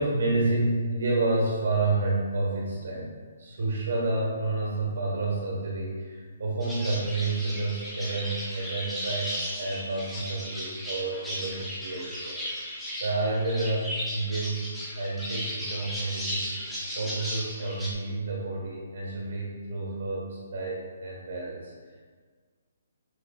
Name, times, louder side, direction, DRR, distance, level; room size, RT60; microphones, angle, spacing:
voice 1, 0.0-3.1 3.4-12.4 12.7-14.7 14.9-16.7 16.9-21.7, right 2 dB, 75° right, -2 dB, 1.4 m, -29 dB
sound 1, 6.6-17.9, equal, 5° left, 0.8 m, -35 dB
6.2 x 2.7 x 2.3 m, 1.5 s
hypercardioid pair, 160°, 0 cm